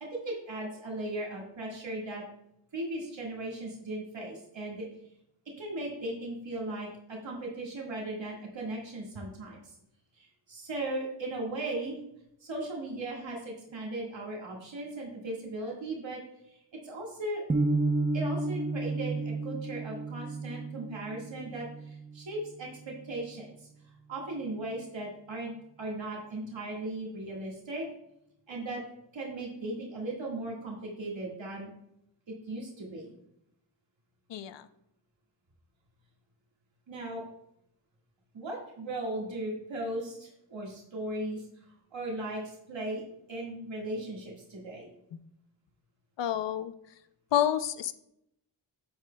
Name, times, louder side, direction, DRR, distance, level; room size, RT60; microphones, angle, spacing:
voice 1, 0.0-2.2 2.7-4.9 5.6-9.7 10.2-12.0 12.4-16.2 16.5-16.6 16.8-17.4 18.1-23.7 24.1-25.5 25.8-27.9 28.5-28.8 29.1-31.7 32.3-33.1 36.9-37.2 38.3-41.6 41.9-43.0 43.3-44.9, right 1 dB, 80° right, -3 dB, 1.8 m, -37 dB
sound 1, 17.5-23.6, right 2 dB, 20° right, 0.6 m, -32 dB
voice 2, 34.3-34.7 46.2-46.7 47.3-47.9, left 10 dB, 70° left, 12 dB, 0.5 m, -28 dB
8.9 x 7.9 x 2.2 m, 0.79 s
wide cardioid pair, 120°, 45 cm